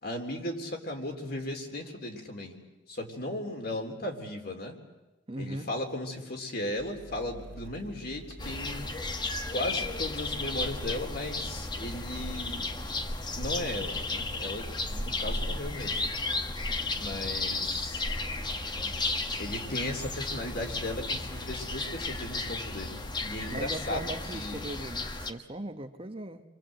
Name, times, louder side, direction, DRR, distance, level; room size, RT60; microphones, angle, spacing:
voice 1, 0.0-2.6 2.9-4.8 5.4-8.9 9.5-12.7 13.4-16.0 17.0-18.0 19.4-24.0 24.3-24.6, left 1 dB, 55° left, 2 dB, 3.6 m, -36 dB
voice 2, 5.3-5.7 23.4-26.4, right 1 dB, 30° right, 7 dB, 1.1 m, -39 dB
sound 1, 6.8-21.9, right 1 dB, 70° right, 2.1 m, -51 dB
sound 2, 8.4-25.3, left 2 dB, 25° left, 1.2 m, -34 dB
30.0 x 24.0 x 7.8 m, 1.1 s
head